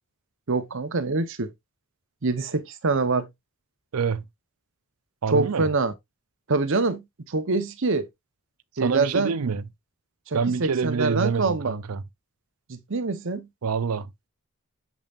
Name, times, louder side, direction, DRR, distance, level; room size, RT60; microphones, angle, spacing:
voice 1, 0.5-1.5 2.2-3.3 5.3-5.9 6.5-8.1 8.8-9.3 10.3-11.8 12.7-13.5, right 3 dB, 60° right, 0.9 m, -25 dB
voice 2, 3.9-4.2 5.2-5.7 8.8-9.6 10.3-12.0 13.6-14.1, right 5 dB, 85° right, 0.5 m, -26 dB
7.2 x 5.3 x 2.5 m
head